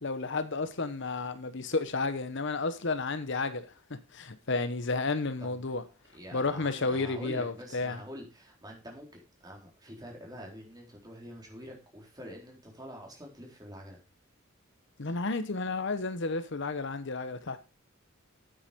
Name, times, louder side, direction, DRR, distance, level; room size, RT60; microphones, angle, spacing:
voice 1, 0.0-5.8 6.3-8.0 15.0-17.6, left 3 dB, 55° left, 0.9 m, -32 dB
voice 2, 6.1-14.0, equal, 20° right, 4.0 m, -46 dB
9.0 x 8.9 x 5.1 m
head